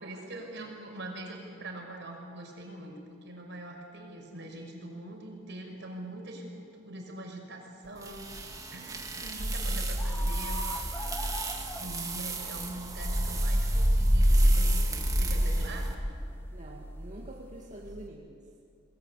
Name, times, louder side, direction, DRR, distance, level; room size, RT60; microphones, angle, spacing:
voice 1, 0.0-8.3 8.7-10.6 11.0-11.1 11.7-15.9, right 1 dB, 60° right, 1 dB, 5.7 m, -43 dB
sound 1, 7.8-18.1, equal, 10° left, 1.8 m, -44 dB
sound 2, 8.0-15.9, right 1 dB, 20° right, 2.3 m, -28 dB
voice 2, 16.5-18.4, right 1 dB, 40° right, -2 dB, 2.2 m, -46 dB
29.5 x 20.5 x 8.3 m, 2.4 s
head